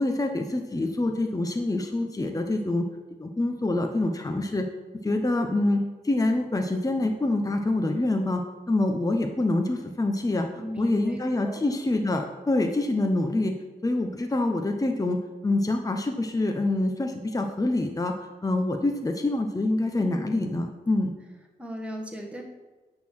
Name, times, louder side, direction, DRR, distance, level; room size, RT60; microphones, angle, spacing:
voice 1, 0.0-2.9 3.2-4.7 5.0-8.4 8.7-10.5 10.8-13.5 13.8-18.1 18.4-21.1, left 2 dB, 20° left, 4 dB, 0.8 m, -26 dB
voice 2, 10.5-11.6 19.9-20.3 21.6-22.4, equal, 5° right, 0 dB, 1.4 m, -37 dB
8.3 x 3.9 x 6.0 m, 1.2 s
cardioid pair, 60°, 17 cm